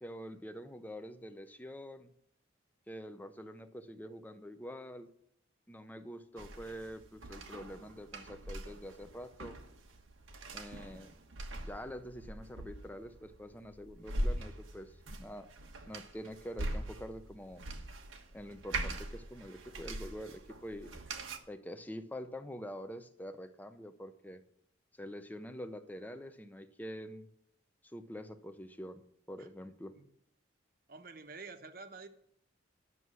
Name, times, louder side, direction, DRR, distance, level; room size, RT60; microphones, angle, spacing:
voice 1, 0.0-2.1 2.9-5.1 5.7-9.6 10.5-11.1 11.6-15.5 15.9-17.6 18.3-20.9 21.5-24.4 24.9-27.3 27.8-29.0 29.3-30.0, equal, 10° left, 9 dB, 0.7 m, -46 dB
sound 1, 6.4-21.4, right 1 dB, 90° right, 1.3 m, -42 dB
voice 2, 30.9-32.1, right 4 dB, 50° right, 8 dB, 1.0 m, -48 dB
11.0 x 6.9 x 6.2 m, 0.71 s
head